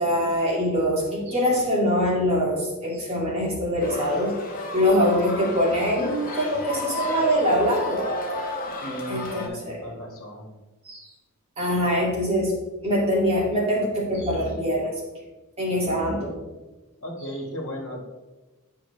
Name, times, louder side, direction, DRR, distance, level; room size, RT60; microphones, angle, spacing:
voice 1, 0.0-4.4 4.7-8.2 9.1-9.8 10.9-11.1 11.6-12.6 12.8-14.9 15.6-16.4, equal, 30° right, -5 dB, 2.3 m, -23 dB
sound 1, 3.8-9.5, left 1 dB, 40° left, 1.1 m, -32 dB
voice 2, 8.8-10.5 17.0-18.0, equal, 65° left, 1 dB, 1.6 m, -36 dB
8.8 x 5.7 x 3.2 m, 1.1 s
head